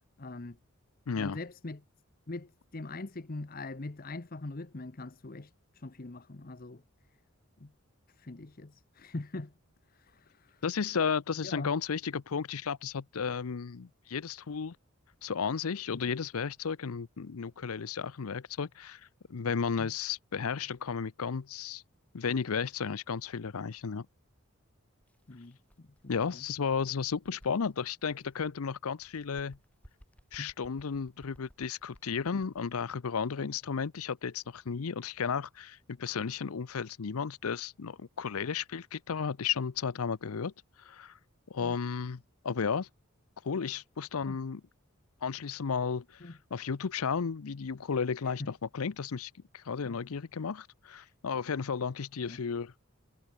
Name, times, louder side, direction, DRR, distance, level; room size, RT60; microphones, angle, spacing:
voice 1, 0.2-0.6 1.1-1.8 2.3-6.8 7.6-7.7 8.1-9.5 9.9-10.6 11.4-11.8 15.9-16.1 25.3-26.4 30.4-30.5 33.4-33.5 44.3-44.4 46.2-46.3 48.4-48.5 49.8-50.0 51.0-51.1 52.2-52.4, left 2 dB, 40° left, 0.9 m, -42 dB
voice 2, 1.1-1.4 10.6-14.8 15.2-19.0 19.3-21.8 22.1-24.1 26.1-29.6 30.3-40.5 40.8-41.1 41.5-42.9 43.4-44.6 45.2-52.7, left 6 dB, 85° left, 0.6 m, -33 dB
Bird, 25.0-28.6 28.9-32.8, equal, 5° left, 2.6 m, -61 dB
head